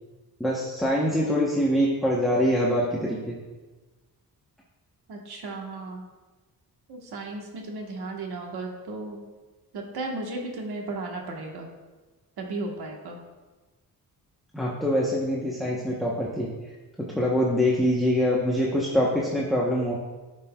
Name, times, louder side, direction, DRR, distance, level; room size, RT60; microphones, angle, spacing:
voice 1, 0.4-3.3 14.5-16.5 17.1-19.9, equal, ahead, -4 dB, 0.8 m, -24 dB
voice 2, 5.1-6.1 6.9-9.2 9.7-11.7 12.4-13.2, right 2 dB, 90° right, 1 dB, 1.3 m, -35 dB
11.0 x 6.1 x 2.3 m, 1.2 s
wide cardioid pair, 135°, 37 cm